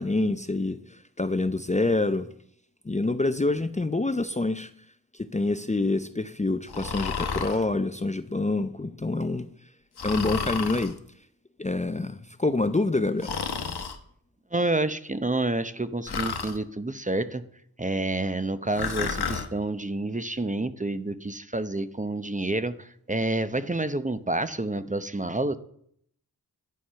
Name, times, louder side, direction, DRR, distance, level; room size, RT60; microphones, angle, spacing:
voice 1, 0.0-2.3 2.8-4.7 5.1-9.5 10.0-11.0 11.6-13.3, left 2 dB, 20° left, 11 dB, 0.6 m, -26 dB
Breathing, 6.7-7.6 10.0-10.9 13.2-14.0 16.1-16.6 18.7-19.5, left 5 dB, 90° left, 1.2 m, -31 dB
voice 2, 14.5-17.4 17.8-25.6, right 2 dB, 20° right, 12 dB, 0.8 m, -28 dB
11.5 x 9.2 x 5.6 m, 0.66 s
wide cardioid pair, 70°, 38 cm